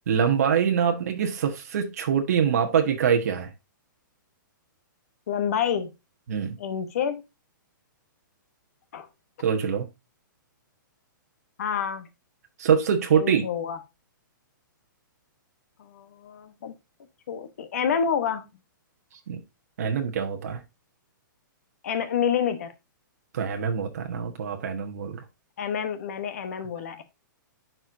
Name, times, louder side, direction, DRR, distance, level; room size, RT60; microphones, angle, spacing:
voice 1, 0.1-3.5 6.3-6.6 9.4-9.9 12.6-13.5 19.3-19.4 19.8-20.6 23.3-25.2, right 7 dB, 45° right, 1.3 m, -24 dB
voice 2, 5.3-5.9 6.6-7.2 8.9-9.1 11.6-12.1 13.1-13.8 15.8-16.7 17.3-18.5 21.8-22.7 25.6-27.0, left 7 dB, 45° left, 1.1 m, -28 dB
10.5 x 4.6 x 2.6 m
hypercardioid pair, 175°, 11 cm